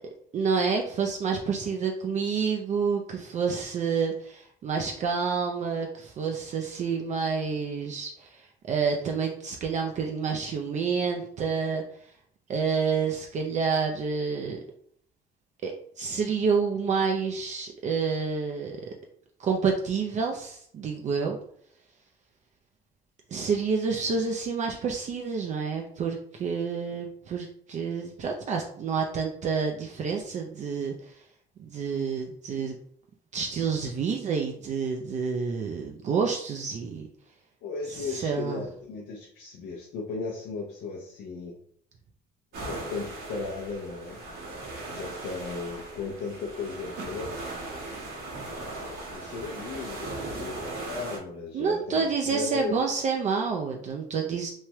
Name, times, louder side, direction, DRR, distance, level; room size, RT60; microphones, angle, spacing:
voice 1, 0.3-11.8 12.5-14.6 15.6-18.8 19.4-21.4 23.3-31.2 31.6-32.8 33.3-37.1 37.9-38.6 51.5-54.5, right 5 dB, 45° right, 1 dB, 0.4 m, -28 dB
voice 2, 37.6-41.6 42.6-44.2 44.9-47.3 48.5-52.8, left 4 dB, 75° left, -1 dB, 0.6 m, -36 dB
sound 1, 42.5-51.2, right 2 dB, 65° right, 1.3 m, -38 dB
3.1 x 2.2 x 2.9 m, 0.62 s
cardioid pair, 110°, 17 cm